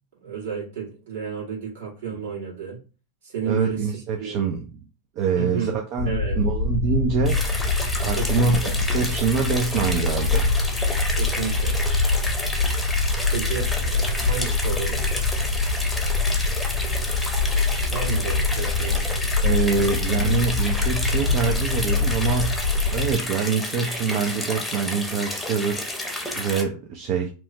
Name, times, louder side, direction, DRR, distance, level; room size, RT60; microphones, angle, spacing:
voice 1, 0.2-2.8 3.2-4.4 5.3-6.4 8.2-8.8 11.1-11.8 13.3-15.1 17.9-19.1 19.7-19.9, right 6 dB, 70° right, 1.5 m, -32 dB
voice 2, 3.5-4.6 5.2-6.1 6.4-7.4 8.0-8.6 8.9-10.5 19.4-22.6 22.9-27.3, right 5 dB, 50° right, 0.4 m, -25 dB
sound 1, 6.0-23.1, left 3 dB, 75° left, 0.3 m, -24 dB
sound 2, 7.3-26.6, left 1 dB, 5° left, 0.7 m, -31 dB
2.9 x 2.1 x 2.7 m
hypercardioid pair, 100°, 0 cm